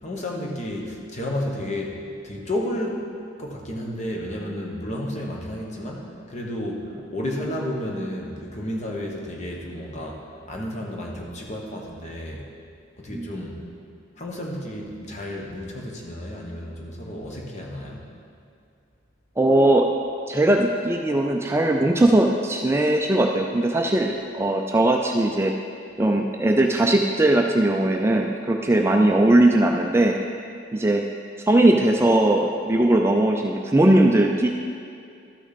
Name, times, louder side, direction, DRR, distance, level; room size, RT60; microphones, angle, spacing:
voice 1, 0.0-3.1 3.4-12.5 13.0-13.6 14.2-18.1, left 1 dB, 35° left, -1 dB, 1.2 m, -32 dB
voice 2, 19.4-19.9 20.3-25.5 26.0-30.2 30.7-31.0 31.5-34.5, right 1 dB, 15° right, 2 dB, 0.3 m, -19 dB
12.5 x 6.1 x 4.1 m, 2.4 s
head